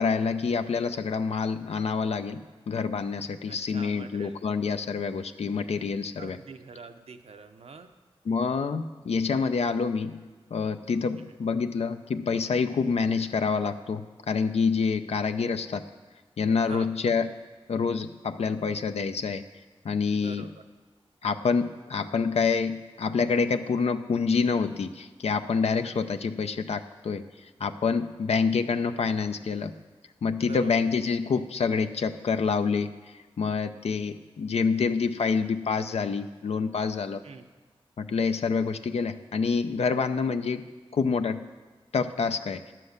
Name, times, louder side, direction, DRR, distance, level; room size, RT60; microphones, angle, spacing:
voice 1, 0.0-6.4 8.3-10.2 10.5-15.8 16.4-17.3 17.7-19.4 19.8-20.5 21.2-27.2 27.6-29.7 30.2-32.9 33.4-37.2 38.0-40.6 40.9-41.4 41.9-42.6, left 5 dB, 80° left, 9 dB, 0.5 m, -27 dB
voice 2, 3.5-4.4 6.2-7.9 11.2-11.3 16.7-16.9 20.1-20.7 28.3-28.4 30.4-30.8 37.2-37.4, right 4 dB, 75° right, 8 dB, 0.7 m, -45 dB
10.5 x 7.6 x 6.6 m, 1.3 s
cardioid pair, 50°, 10 cm